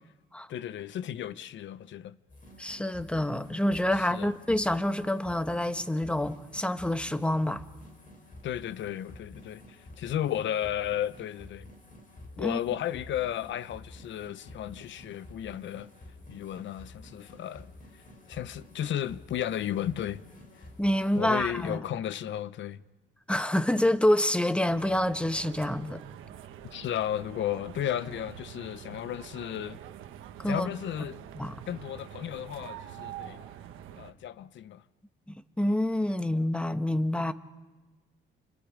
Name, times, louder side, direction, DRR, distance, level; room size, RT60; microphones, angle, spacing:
voice 1, 0.5-2.2 4.1-4.3 8.4-11.7 12.4-15.9 16.3-17.7 18.3-20.2 21.1-22.8 26.7-29.8 30.4-31.2 31.7-33.4 34.0-34.8, left 11 dB, 70° left, 0.9 m, -34 dB
sound 1, 2.3-21.8, left 1 dB, 45° left, 7.3 m, -50 dB
voice 2, 2.6-7.6 12.4-12.6 20.8-21.8 23.3-26.0 30.4-30.7 31.4-31.6 35.6-37.3, left 1 dB, 5° left, 1.2 m, -27 dB
sound 2, 24.7-34.1, right 10 dB, 90° right, 1.4 m, -46 dB
29.5 x 25.5 x 5.1 m
cardioid pair, 90°, 20 cm